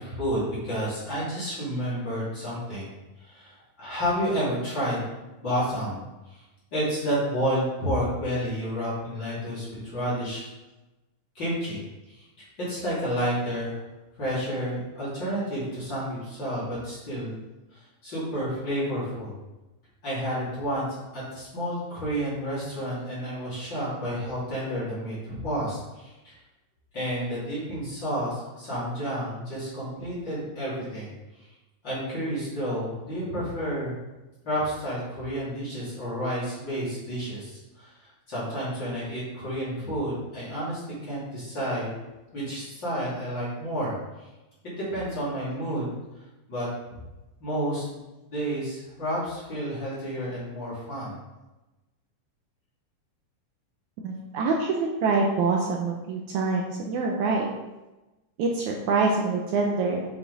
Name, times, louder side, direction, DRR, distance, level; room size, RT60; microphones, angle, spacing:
voice 1, 0.0-2.9 3.2-5.1 5.4-6.0 6.3-6.4 6.7-10.5 11.3-13.8 14.2-17.3 17.7-19.3 20.0-26.4 26.9-31.1 31.4-31.5 31.8-33.9 34.4-41.9 42.3-44.3 44.6-46.7 47.4-48.0 48.3-51.2, equal, 35° left, -9 dB, 3.1 m, -30 dB
voice 2, 54.0-57.5 58.4-60.1, right 4 dB, 75° right, 0 dB, 1.9 m, -25 dB
7.8 x 5.7 x 4.0 m, 1.1 s
omnidirectional pair, 3.9 m